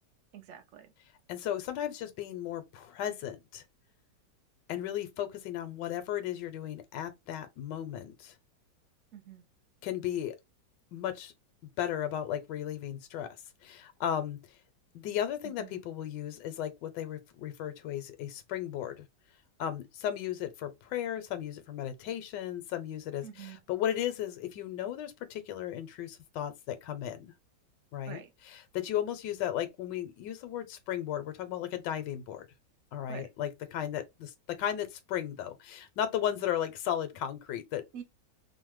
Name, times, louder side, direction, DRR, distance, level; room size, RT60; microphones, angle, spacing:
voice 1, 0.3-0.9 9.1-9.4 15.4-15.8 23.2-23.6 28.1-28.3 33.1-33.3 37.9-38.0, right 9 dB, 65° right, 0.8 m, -46 dB
voice 2, 1.3-3.6 4.7-8.3 9.8-10.3 10.9-11.3 11.8-13.4 13.6-14.4 14.9-19.0 19.6-27.3 27.9-28.2 28.5-32.5 32.9-37.8, left 10 dB, 80° left, 1.2 m, -35 dB
3.1 x 2.1 x 3.0 m
omnidirectional pair, 1.9 m